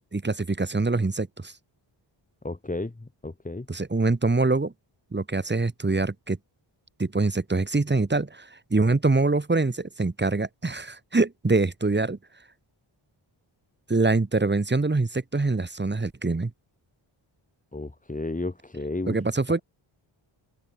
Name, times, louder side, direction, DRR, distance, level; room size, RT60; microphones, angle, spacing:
voice 1, 0.0-1.5 3.7-4.7 5.1-6.4 7.0-12.2 13.9-16.5 19.1-19.6, right 3 dB, 20° right, 2.0 m, -24 dB
voice 2, 2.4-3.7 17.7-19.2, left 2 dB, 15° left, 2.1 m, -33 dB
wide cardioid pair, 165°, 49 cm